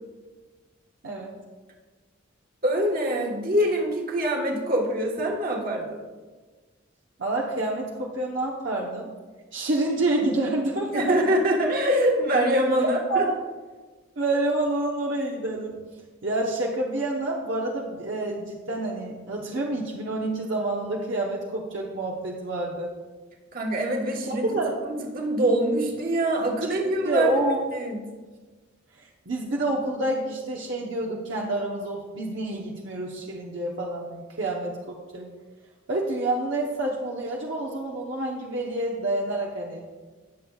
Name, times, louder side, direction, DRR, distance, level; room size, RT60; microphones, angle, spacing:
voice 1, 2.6-6.0 10.9-13.3 23.5-24.4 24.8-27.3 27.7-28.0, right 1 dB, 45° right, 0 dB, 1.4 m, -24 dB
voice 2, 7.2-9.1 9.5-11.2 12.8-13.4 14.2-15.8 16.2-22.9 24.3-24.8 27.0-27.6 29.0-35.3 35.9-39.8, right 2 dB, 65° right, -1 dB, 1.0 m, -28 dB
18.0 x 7.0 x 2.4 m, 1.3 s
head